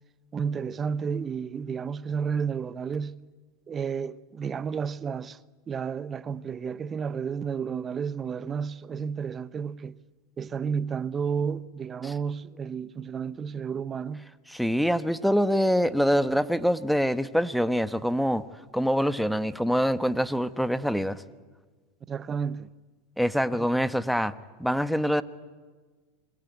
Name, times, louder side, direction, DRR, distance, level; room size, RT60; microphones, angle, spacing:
voice 1, 0.3-3.2 3.7-5.4 5.7-10.0 10.4-14.3 22.1-22.7 23.5-23.7, right 6 dB, 30° right, 1.0 m, -31 dB
voice 2, 14.5-18.4 18.7-21.2 23.2-24.3 24.6-25.2, equal, ahead, 1.2 m, -25 dB
27.0 x 22.0 x 9.4 m
hypercardioid pair, 100°, 0 cm